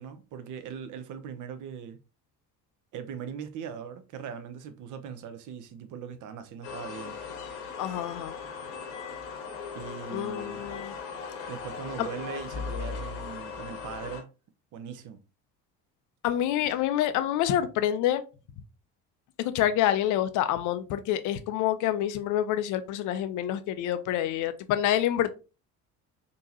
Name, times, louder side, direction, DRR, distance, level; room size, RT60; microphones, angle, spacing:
voice 1, 0.0-2.0 2.9-7.2 9.7-10.6 11.5-14.3 14.7-15.2, right 7 dB, 40° right, 0.6 m, -40 dB
sound 1, 6.6-14.2, left 5 dB, 60° left, 1.0 m, -38 dB
voice 2, 7.8-8.3 10.1-10.9 12.0-12.1 16.2-18.2 19.4-25.3, left 11 dB, 40° left, 0.5 m, -27 dB
3.7 x 2.6 x 2.8 m
figure-of-eight pair, 55°, 49 cm